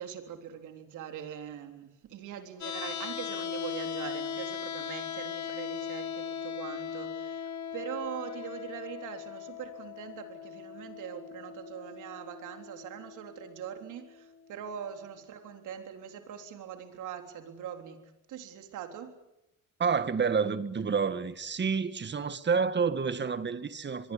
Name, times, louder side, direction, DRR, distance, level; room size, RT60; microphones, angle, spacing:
voice 1, 0.0-19.2, right 9 dB, 85° right, 3.7 m, -42 dB
sound 1, 2.6-14.6, left 7 dB, 70° left, 2.0 m, -39 dB
voice 2, 19.8-24.1, right 5 dB, 35° right, 1.9 m, -29 dB
24.5 x 22.5 x 8.8 m
cardioid pair, 90°, 30 cm